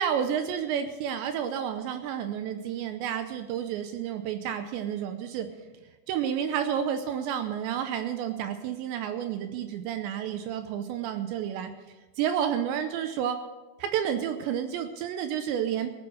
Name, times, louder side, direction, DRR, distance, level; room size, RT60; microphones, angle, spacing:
voice 1, 0.0-5.5 6.1-11.7 12.2-13.4 13.8-15.9, right 9 dB, 80° right, 7 dB, 2.6 m, -30 dB
18.5 x 8.0 x 6.4 m, 1.2 s
omnidirectional pair, 5.8 m